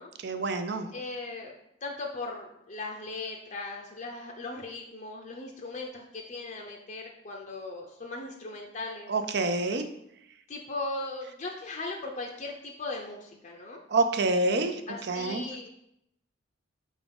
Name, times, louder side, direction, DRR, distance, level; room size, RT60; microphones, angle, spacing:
voice 1, 0.2-0.9 9.1-9.8 13.9-14.8 15.1-15.5, right 2 dB, 60° right, 8 dB, 0.5 m, -27 dB
voice 2, 0.9-1.5 1.8-9.1 10.5-13.8 14.9-15.7, left 2 dB, 40° left, 1 dB, 0.6 m, -38 dB
5.0 x 3.7 x 5.2 m, 0.79 s
head